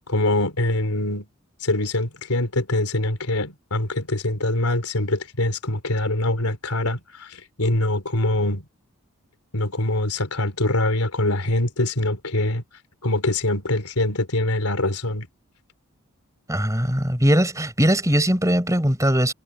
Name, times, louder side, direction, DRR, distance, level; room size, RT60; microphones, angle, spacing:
voice 1, 0.1-1.3 1.6-8.6 9.5-12.6 13.0-15.3, left 1 dB, 90° left, 3.6 m, -24 dB
voice 2, 16.5-19.3, equal, 15° right, 5.3 m, -20 dB
head